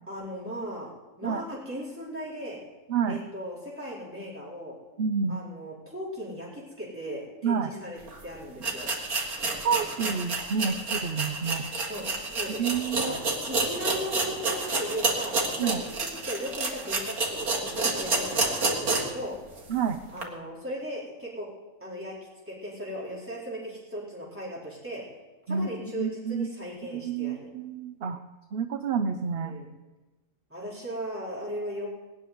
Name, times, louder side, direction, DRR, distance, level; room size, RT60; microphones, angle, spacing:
voice 1, 0.1-0.9 1.2-2.6 3.1-4.8 5.3-8.9 11.7-12.7 12.9-19.4 20.1-21.5 21.8-22.2 22.5-25.0 25.5-27.5 29.3-29.7 30.5-31.9, equal, 10° right, -6 dB, 4.6 m, -37 dB
voice 2, 5.0-5.4 7.4-7.7 9.6-11.6 12.6-13.1 15.6-15.8 19.7-20.0 25.5-25.7 25.9-26.5 26.9-28.2 28.5-29.6, right 6 dB, 50° right, 8 dB, 0.8 m, -28 dB
sound 1, 8.1-8.2 8.6-19.2 19.6-19.7 20.2-20.3, right 3 dB, 90° right, 2.4 m, -29 dB
19.5 x 6.7 x 9.5 m, 1.1 s
omnidirectional pair, 1.5 m